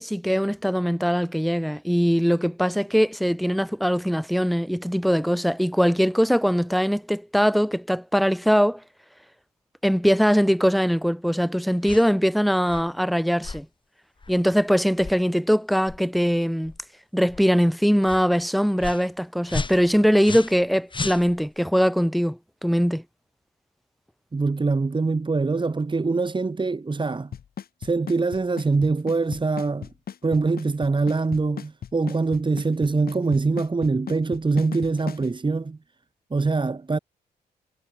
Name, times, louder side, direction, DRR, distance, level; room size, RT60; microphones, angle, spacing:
voice 1, 0.0-8.8 9.8-13.7 14.3-16.7 17.1-23.0, equal, ahead, 2.1 m, -21 dB
sound 1, 11.8-12.1 12.6-12.9 13.4-13.6 14.2-14.4 15.0-15.2 15.8-16.0 16.6-16.8 17.3-17.4 18.0-18.2 18.8-19.1 19.5-20.6 20.9-21.6, left 3 dB, 30° left, 4.4 m, -33 dB
voice 2, 24.3-27.3 27.8-29.9 30.2-35.8 36.3-37.0, right 3 dB, 25° right, 3.5 m, -24 dB
Drum kit / Snare drum / Bass drum, 27.3-35.3, left 8 dB, 60° left, 4.3 m, -36 dB
cardioid pair, 75°, 17 cm